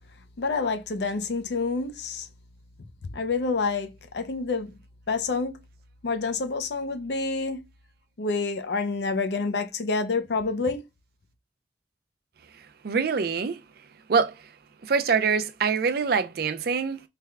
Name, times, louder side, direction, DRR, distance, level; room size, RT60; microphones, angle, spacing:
voice 1, 0.4-2.3 3.1-4.7 5.1-5.6 6.0-7.6 8.2-10.8, left 4 dB, 65° left, 0.5 m, -28 dB
voice 2, 12.8-13.6 14.1-14.4 14.8-17.0, right 5 dB, 55° right, 0.4 m, -24 dB
3.4 x 2.2 x 3.4 m
head